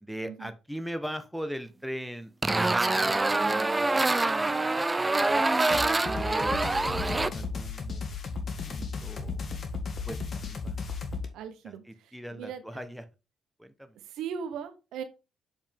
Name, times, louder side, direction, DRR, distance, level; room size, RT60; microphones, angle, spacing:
voice 1, 0.0-3.6 4.0-5.5 6.3-8.0 8.4-9.5 10.1-10.7 11.6-13.0 13.6-14.0, equal, ahead, 8 dB, 1.1 m, -40 dB
sound 1, 2.4-7.3, right 2 dB, 20° right, 0.6 m, -25 dB
sound 2, 5.7-11.3, left 4 dB, 50° left, 1.7 m, -35 dB
voice 2, 11.3-12.8 14.0-15.0, right 7 dB, 85° right, 8 dB, 1.3 m, -39 dB
7.1 x 5.4 x 3.6 m, 0.29 s
cardioid pair, 90°, 0 cm